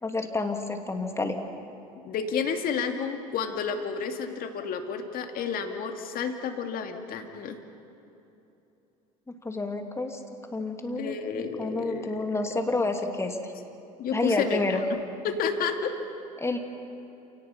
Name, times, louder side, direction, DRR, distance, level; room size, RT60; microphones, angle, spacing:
voice 1, 0.0-1.4 9.3-10.2 10.5-11.2 11.6-13.5 14.1-14.8 16.4-16.6, left 2 dB, 15° left, 5 dB, 2.6 m, -29 dB
voice 2, 2.0-7.6 11.0-12.2 14.0-15.9, left 6 dB, 50° left, 5 dB, 2.4 m, -31 dB
28.5 x 18.0 x 5.7 m, 2.9 s
hypercardioid pair, 75°, 18 cm